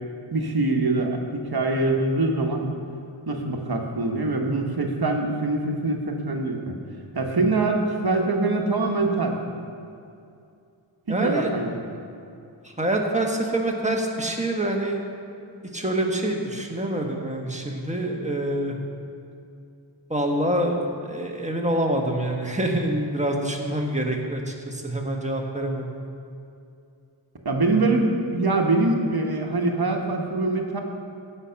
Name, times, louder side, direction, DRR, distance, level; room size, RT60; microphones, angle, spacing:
voice 1, 0.3-2.7 3.3-6.8 7.1-9.4 11.1-11.8 27.4-30.8, right 2 dB, 55° right, 2 dB, 1.4 m, -24 dB
voice 2, 11.1-11.5 12.8-15.0 15.7-18.7 20.1-25.9, right 1 dB, 15° right, 1 dB, 1.4 m, -26 dB
15.0 x 5.7 x 5.8 m, 2.6 s
wide cardioid pair, 80°, 45 cm